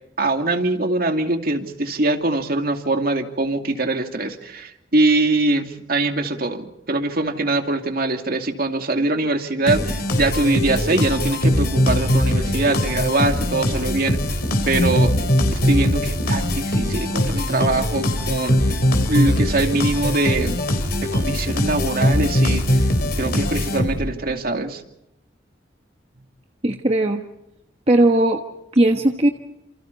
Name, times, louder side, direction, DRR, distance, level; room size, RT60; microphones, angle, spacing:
voice 1, 0.2-14.2 14.7-15.1 15.6-18.8 19.1-20.7 21.0-22.8 23.2-24.8, right 2 dB, 55° right, 5 dB, 2.5 m, -23 dB
sound 1, 9.7-24.2, left 1 dB, 55° left, 4.0 m, -21 dB
voice 2, 26.6-27.2 27.9-28.4 28.7-29.3, right 1 dB, 35° right, 4 dB, 1.3 m, -17 dB
29.5 x 28.0 x 4.1 m, 0.84 s
head